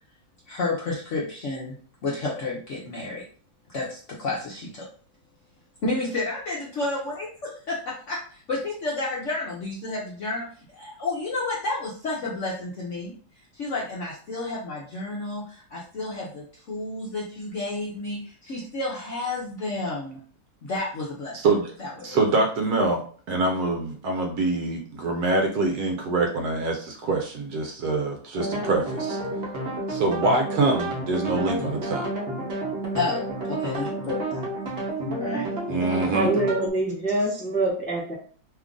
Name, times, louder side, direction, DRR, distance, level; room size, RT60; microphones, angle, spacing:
voice 1, 0.5-1.8 2.0-3.2 3.7-4.8 5.8-7.1 7.4-13.1 13.5-20.2 20.6-21.4 21.8-22.2 32.9-34.4 35.1-35.5, left 2 dB, 60° left, -4 dB, 0.8 m, -31 dB
voice 2, 21.3-21.7 22.0-29.2 29.9-32.1 35.7-36.3, right 3 dB, 70° right, 2 dB, 1.0 m, -25 dB
sound 1, 28.3-36.7, right 1 dB, 50° right, 0.8 m, -30 dB
voice 3, 36.1-38.1, right 2 dB, 5° left, -5 dB, 0.6 m, -24 dB
3.0 x 2.4 x 3.6 m, 0.43 s
omnidirectional pair, 1.9 m